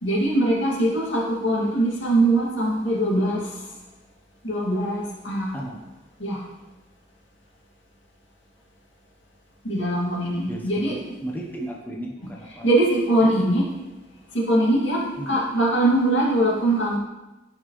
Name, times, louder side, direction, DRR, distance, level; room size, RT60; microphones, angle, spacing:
voice 1, 0.0-3.6 4.4-5.5 6.2-6.4 9.6-11.0 12.6-13.7 14.3-17.0, right 1 dB, 75° left, -4 dB, 2.6 m, -22 dB
voice 2, 11.2-12.7 13.2-13.3 15.2-15.4, right 1 dB, 10° left, -2 dB, 1.1 m, -34 dB
15.0 x 5.9 x 3.3 m, 1.1 s
head